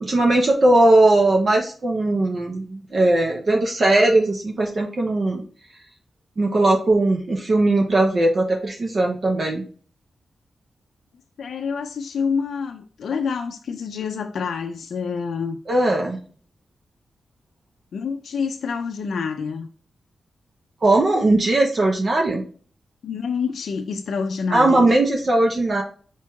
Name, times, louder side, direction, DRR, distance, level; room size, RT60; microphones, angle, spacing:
voice 1, 0.0-5.4 6.4-9.6 15.7-16.2 20.8-22.4 24.5-25.8, right 2 dB, 45° right, 1 dB, 0.6 m, -19 dB
voice 2, 11.4-15.6 17.9-19.7 23.0-24.9, left 5 dB, 80° left, 4 dB, 0.4 m, -27 dB
4.5 x 4.4 x 2.2 m, 0.42 s
wide cardioid pair, 125°, 0 cm